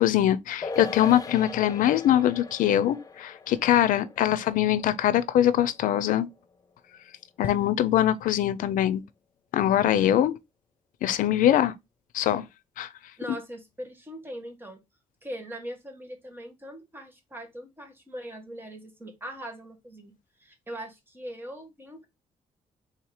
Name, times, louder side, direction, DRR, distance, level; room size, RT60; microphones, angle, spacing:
voice 1, 0.0-6.3 7.4-9.0 9.5-10.3 11.0-11.7 12.1-12.4 12.8-12.9, left 11 dB, 90° left, 0.4 m, -23 dB
sound 1, 0.6-7.3 7.6-7.7, left 3 dB, 25° left, 0.4 m, -41 dB
voice 2, 13.2-14.8 15.2-22.1, equal, 15° right, 1.3 m, -41 dB
3.6 x 2.8 x 4.7 m
cardioid pair, 115°, 13 cm